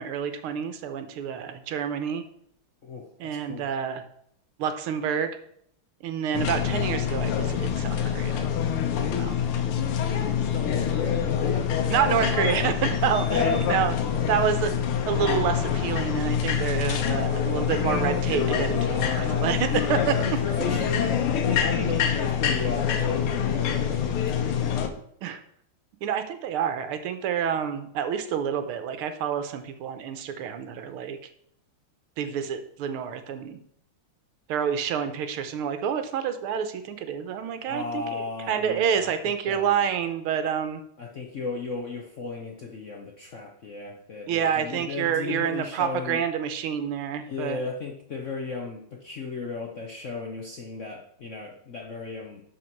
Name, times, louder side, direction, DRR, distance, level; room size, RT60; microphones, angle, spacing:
voice 1, 0.0-2.2 3.2-4.0 4.6-5.3 6.0-8.5 9.2-9.4 11.9-13.9 14.3-14.7 15.1-20.4 25.2-25.4 26.0-31.2 32.2-33.6 34.5-40.8 44.3-47.6, right 8 dB, 80° right, 9 dB, 1.7 m, -28 dB
voice 2, 2.8-3.7 10.5-11.2 11.5-11.9 13.3-13.6 16.9-17.8 18.8-19.9 20.2-24.9 37.7-39.1 39.5-39.8 41.0-46.2 47.3-52.4, left 4 dB, 55° left, 1 dB, 0.8 m, -34 dB
sound 1, 6.3-24.9, left 8 dB, 80° left, 1.8 m, -26 dB
11.5 x 4.6 x 4.5 m, 0.68 s
omnidirectional pair, 2.4 m